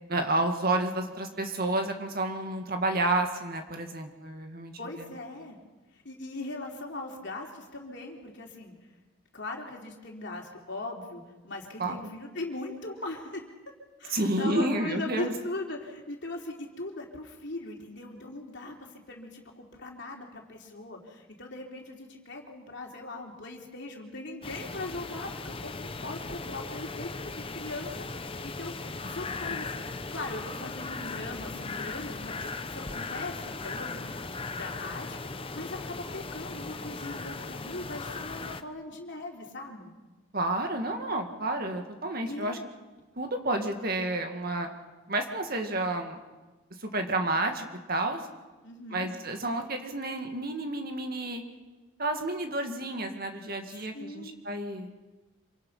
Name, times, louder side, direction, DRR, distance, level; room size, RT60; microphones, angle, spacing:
voice 1, 0.1-4.7 5.0-5.1 11.8-12.0 14.1-15.3 40.3-42.6 43.2-44.7 45.1-46.2 46.8-48.2 48.9-51.4 52.0-54.9, right 2 dB, 45° right, 4 dB, 2.2 m, -30 dB
voice 2, 4.8-5.6 5.9-8.7 9.3-13.4 14.0-18.8 19.1-29.7 30.1-39.9 42.3-42.7 48.6-49.1 53.9-54.4, left 2 dB, 55° left, 1 dB, 3.4 m, -40 dB
sound 1, 24.4-38.6, left 3 dB, 25° left, 0.8 m, -38 dB
27.0 x 25.0 x 5.7 m, 1.2 s
head